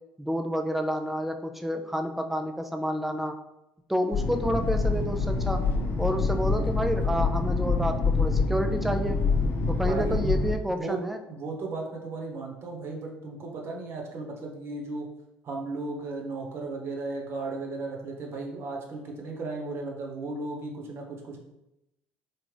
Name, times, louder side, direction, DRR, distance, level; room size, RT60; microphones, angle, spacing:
voice 1, 0.2-3.3 3.9-5.6 6.0-9.2 9.7-11.2, equal, 5° right, 5 dB, 0.4 m, -29 dB
sound 1, 4.1-10.5, left 4 dB, 40° left, 0.7 m, -26 dB
voice 2, 9.7-10.3 10.6-11.0 11.3-15.1 15.4-21.4, right 3 dB, 50° right, 0 dB, 1.0 m, -35 dB
3.7 x 2.4 x 3.3 m, 0.90 s
hypercardioid pair, 65°, 6 cm